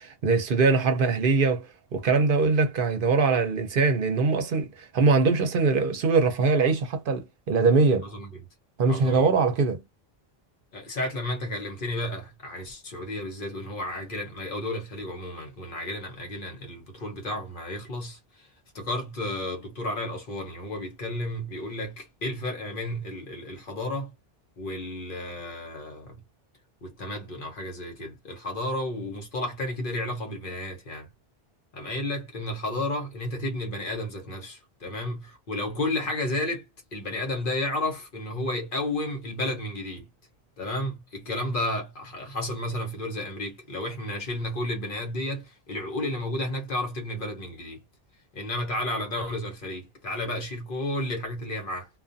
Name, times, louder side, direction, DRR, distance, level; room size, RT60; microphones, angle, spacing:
voice 1, 0.0-1.7 1.9-8.1 8.8-9.8, right 4 dB, 65° right, 0.7 m, -22 dB
voice 2, 8.0-8.4 8.9-9.3 10.7-18.5 18.7-24.1 24.6-26.2 26.8-31.1 31.7-36.6 36.9-40.1 40.6-47.8 48.3-51.9, left 1 dB, 60° left, 1.0 m, -32 dB
2.4 x 2.2 x 2.6 m
omnidirectional pair, 1.0 m